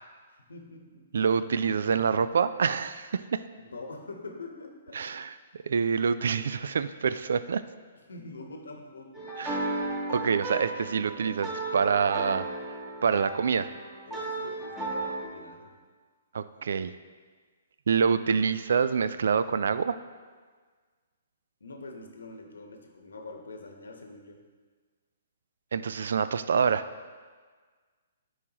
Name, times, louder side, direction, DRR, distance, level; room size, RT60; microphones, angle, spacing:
voice 1, 0.5-1.1 3.6-5.0 8.0-9.3 14.0-15.8 21.6-24.4, left 3 dB, 85° left, 3 dB, 1.1 m, -44 dB
voice 2, 1.1-3.4 5.0-5.3 5.7-7.6 9.4-9.8 10.1-12.4 13.0-13.7 16.3-16.9 17.9-20.0 25.7-26.8, right 6 dB, 70° right, 14 dB, 0.3 m, -26 dB
sound 1, 9.1-15.2, right 2 dB, 15° right, 1.5 m, -34 dB
9.7 x 4.8 x 3.0 m, 1.5 s
hypercardioid pair, 140°, 0 cm